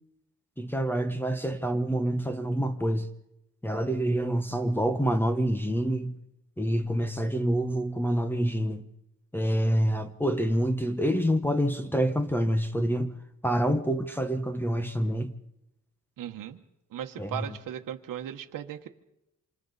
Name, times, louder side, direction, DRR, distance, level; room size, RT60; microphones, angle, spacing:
voice 1, 0.6-3.1 3.6-6.2 6.6-8.9 9.3-13.1 13.4-15.3 17.2-17.5, equal, 5° left, 1.0 m, -27 dB
voice 2, 16.2-16.6 16.9-18.9, right 10 dB, 90° right, 1.3 m, -37 dB
27.5 x 27.0 x 4.1 m
cardioid pair, 140°, 32 cm